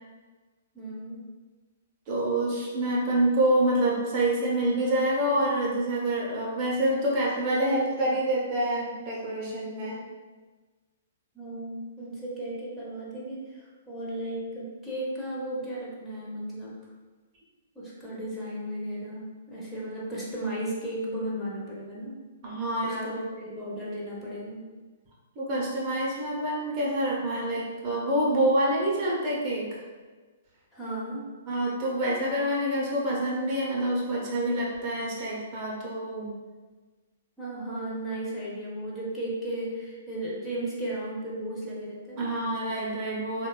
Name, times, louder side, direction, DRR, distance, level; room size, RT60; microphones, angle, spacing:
voice 1, 0.7-1.2 9.9-10.0 11.3-16.8 17.7-22.2 22.8-24.7 30.7-31.3 37.4-42.3, right 1 dB, 5° left, -8 dB, 0.7 m, -35 dB
voice 2, 2.1-10.0 22.4-23.2 25.4-29.7 31.5-36.3 42.2-43.5, right 1 dB, 35° right, -4 dB, 0.6 m, -27 dB
3.3 x 2.1 x 2.2 m, 1.3 s
figure-of-eight pair, 115°, 0 cm